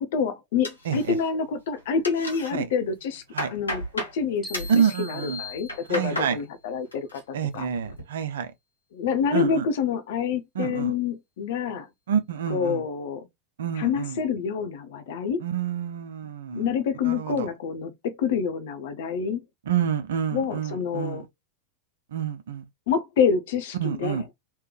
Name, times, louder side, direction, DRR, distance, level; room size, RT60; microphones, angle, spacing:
voice 1, 0.0-3.2 3.5-4.7 5.0-7.2 7.5-7.7 8.9-11.9 12.5-13.3 13.8-15.4 16.5-19.4 20.3-21.2 22.9-24.2, left 6 dB, 55° left, 0.9 m, -27 dB
sound 1, 0.6-1.5 1.8-2.5 3.0-4.2 4.5-4.8 5.5-6.3 6.7-7.2 7.6-8.0, left 1 dB, 80° left, 1.5 m, -34 dB
voice 2, 0.9-1.2 2.5-2.7 3.3-3.5 4.7-5.4 5.9-6.4 7.3-8.5 9.3-9.7 10.5-10.9 12.1-12.8 13.6-14.2 15.4-16.7 17.0-17.5 19.7-21.2 22.1-22.6 23.8-24.2, right 8 dB, 60° right, 0.7 m, -27 dB
sound 2, 4.4-6.4, left 4 dB, ahead, 1.5 m, -41 dB
3.3 x 3.2 x 3.3 m
figure-of-eight pair, 90°, 0 cm